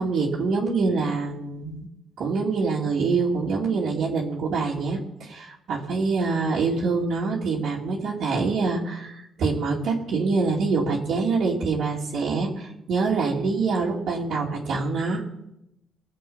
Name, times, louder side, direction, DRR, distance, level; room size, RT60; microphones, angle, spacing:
voice 1, 0.0-1.9 2.2-15.2, right 4 dB, 75° right, -5 dB, 2.5 m, -25 dB
20.5 x 7.7 x 5.5 m, 0.84 s
cardioid pair, 90°, 0 cm